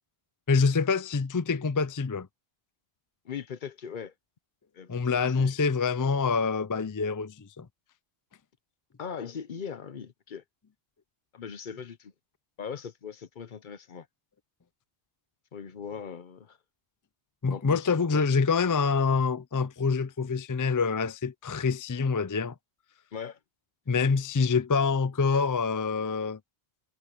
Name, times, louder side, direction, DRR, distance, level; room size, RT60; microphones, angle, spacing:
voice 1, 0.5-2.3 4.9-7.7 17.4-22.5 23.9-26.4, left 5 dB, 35° left, 0.3 m, -26 dB
voice 2, 3.2-4.1 4.7-5.9 9.0-10.4 11.3-12.1 12.6-14.1 15.5-16.6 17.5-18.3 23.1-23.4, left 7 dB, 50° left, 0.8 m, -40 dB
omnidirectional pair, 1.1 m